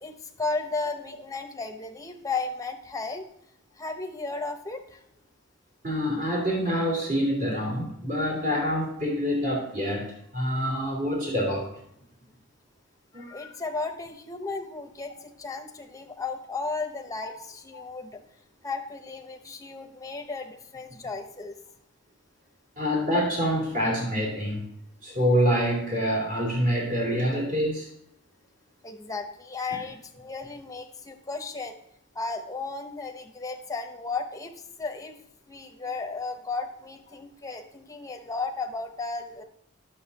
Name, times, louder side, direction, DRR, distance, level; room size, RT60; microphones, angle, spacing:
voice 1, 0.0-3.2 3.8-5.0 13.1-18.2 18.6-21.5 28.8-31.7 32.1-35.2 35.5-39.4, left 3 dB, 15° left, 5 dB, 0.8 m, -34 dB
voice 2, 5.8-11.7 13.1-13.3 17.7-17.9 22.8-24.7 25.0-27.9, equal, 40° right, -2 dB, 2.8 m, -26 dB
9.7 x 6.8 x 4.0 m, 0.74 s
head